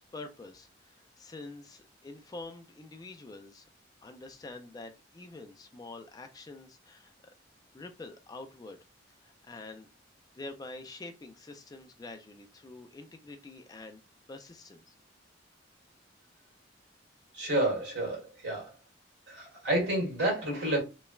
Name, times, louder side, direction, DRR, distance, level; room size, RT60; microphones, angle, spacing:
voice 1, 0.0-3.7 4.0-7.1 7.7-8.8 9.2-9.9 10.3-14.0 14.3-14.9, left 2 dB, 20° left, 0.3 m, -46 dB
voice 2, 17.3-18.7 19.3-20.8, right 1 dB, 75° right, 1.4 m, -30 dB
3.1 x 2.1 x 2.3 m
head